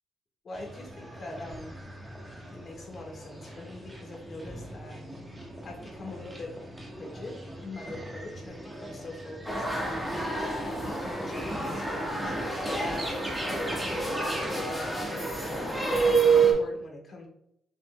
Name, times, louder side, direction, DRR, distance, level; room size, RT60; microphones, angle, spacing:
voice 1, 0.4-1.8 2.5-5.0 5.6-10.1 10.7-12.4 12.8-13.1 13.4-17.3, left 2 dB, 45° left, 0 dB, 1.5 m, -42 dB
sound 1, 0.5-16.6, right 1 dB, 15° right, 1.2 m, -42 dB
sound 2, 9.4-16.5, right 4 dB, ahead, 1.4 m, -28 dB
6.0 x 3.9 x 2.2 m, 0.78 s
cardioid pair, 90°, 0 cm